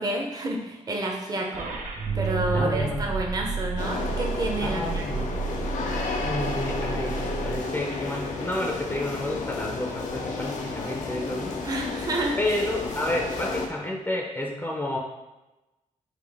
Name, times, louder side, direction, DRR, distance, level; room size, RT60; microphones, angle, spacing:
voice 1, 0.0-1.7 2.1-5.2 11.6-12.6, right 1 dB, 30° right, 0 dB, 0.7 m, -29 dB
sound 1, 1.5-7.6, right 5 dB, 85° right, 0.6 m, -32 dB
sound 2, 2.0-7.3, right 4 dB, 50° right, 1.1 m, -38 dB
voice 2, 2.5-3.1 4.6-5.3 6.2-11.6 12.4-15.0, left 1 dB, 15° left, -1 dB, 0.5 m, -30 dB
sound 3, 3.8-13.7, left 3 dB, 75° left, 0.6 m, -32 dB
5.0 x 2.0 x 3.4 m, 1.0 s
cardioid pair, 95°, 13 cm